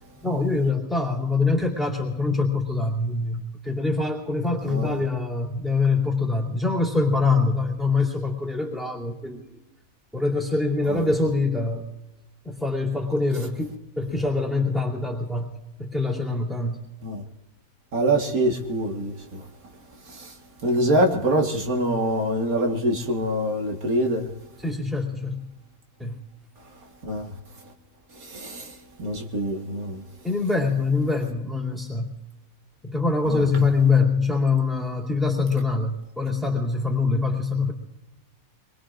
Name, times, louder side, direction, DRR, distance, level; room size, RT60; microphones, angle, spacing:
voice 1, 0.2-9.5 10.1-11.9 12.4-16.8 24.6-25.5 26.0-26.2 30.2-32.1 32.8-37.7, left 3 dB, ahead, 2.8 m, -24 dB
voice 2, 17.9-19.4 20.2-20.3 20.6-24.3 27.1-27.3 28.2-28.7 29.0-30.0 33.3-33.4, right 1 dB, 85° right, 2.1 m, -24 dB
26.5 x 22.0 x 2.5 m
omnidirectional pair, 1.5 m